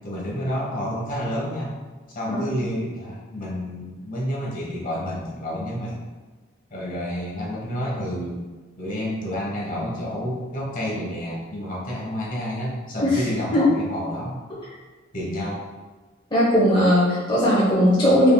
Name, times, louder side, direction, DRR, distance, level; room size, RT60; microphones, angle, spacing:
voice 1, 0.0-1.7 2.1-6.0 6.7-8.4 8.8-14.4 15.1-15.6, equal, 45° left, -5 dB, 1.1 m, -29 dB
voice 2, 16.3-18.3, equal, 25° left, -8 dB, 1.0 m, -18 dB
5.0 x 3.4 x 2.3 m, 1.3 s
head